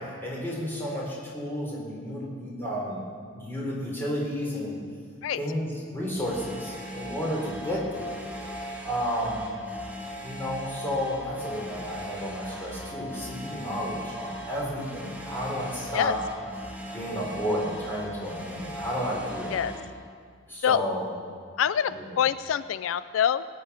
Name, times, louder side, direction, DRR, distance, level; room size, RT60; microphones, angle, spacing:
voice 1, 0.2-3.0 3.3-4.8 5.4-8.1 8.8-9.5 10.2-16.2 16.9-19.6 20.5-21.1 21.9-22.1, equal, 10° left, -5 dB, 3.8 m, -32 dB
sound 1, 6.1-19.9, equal, 10° right, 1.6 m, -39 dB
voice 2, 21.6-23.5, left 9 dB, 85° left, 15 dB, 0.4 m, -25 dB
19.5 x 8.5 x 5.6 m, 2.1 s
head